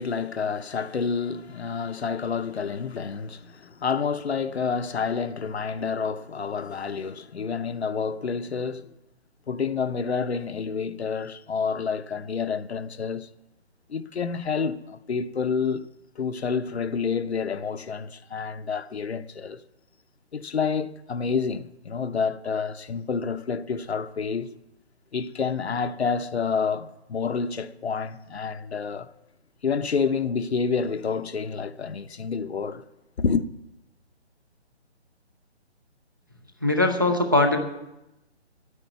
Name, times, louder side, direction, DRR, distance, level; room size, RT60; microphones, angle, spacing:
voice 1, 0.0-8.9 9.5-13.3 13.9-15.8 16.2-19.6 20.3-24.5 25.1-29.1 29.6-32.8 33.2-33.4, left 5 dB, 70° left, 0.9 m, -28 dB
voice 2, 36.6-37.6, left 2 dB, 20° right, 0.6 m, -20 dB
10.5 x 9.9 x 9.3 m
hypercardioid pair, 180°, 34 cm